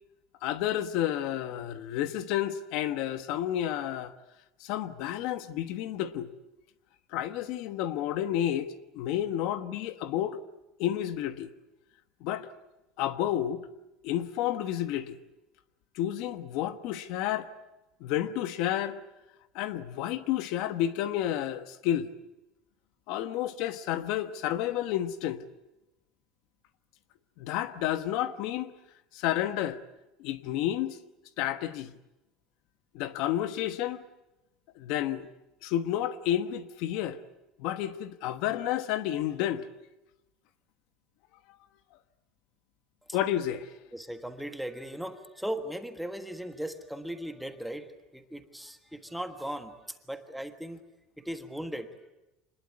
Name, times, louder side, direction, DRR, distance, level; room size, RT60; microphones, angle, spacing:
voice 1, 0.4-4.1 4.6-6.3 7.1-10.4 10.8-11.5 12.2-12.5 13.0-13.7 14.0-15.2 15.9-17.5 18.0-19.0 19.5-22.1 23.1-25.4 27.4-28.7 29.1-29.8 30.2-31.0 31.4-31.9 32.9-34.0 34.8-35.3 35.6-37.2 37.6-39.7 43.1-43.7, left 12 dB, 55° left, 1.2 m, -30 dB
voice 2, 43.9-50.8 51.2-51.9, right 1 dB, ahead, 1.4 m, -38 dB
26.5 x 21.0 x 9.5 m
cardioid pair, 175°, 0 cm